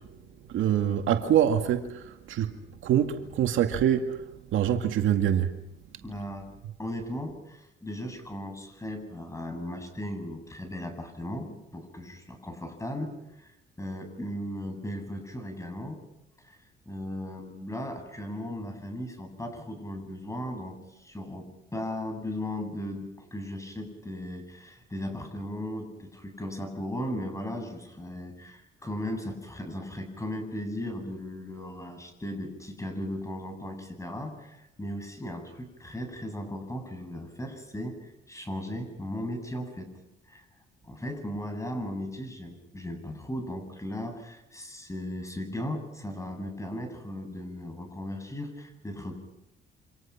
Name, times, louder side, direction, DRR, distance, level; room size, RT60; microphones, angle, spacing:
voice 1, 0.0-5.6, right 10 dB, 80° right, 2.2 m, -26 dB
voice 2, 6.0-6.5 6.8-13.5 13.8-16.0 16.4-16.6 16.8-39.9 40.3-40.4 40.8-49.1, left 1 dB, 15° left, 7.9 m, -37 dB
28.0 x 26.5 x 6.0 m
cardioid pair, 90°, 20 cm